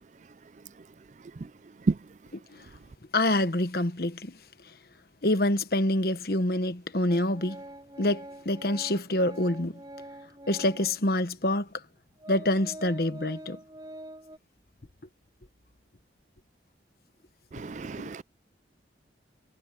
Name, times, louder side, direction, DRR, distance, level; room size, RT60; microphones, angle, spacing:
voice 1, 3.1-4.3 5.2-7.6 8.0-9.8 10.5-11.7 12.3-13.6, left 1 dB, 55° left, 1.3 m, -26 dB
Organ, 7.1-11.0 11.7-11.8 12.2-14.4, right 1 dB, 20° right, 5.4 m, -45 dB
voice 2, 17.6-18.2, right 4 dB, 40° right, 0.4 m, -38 dB
head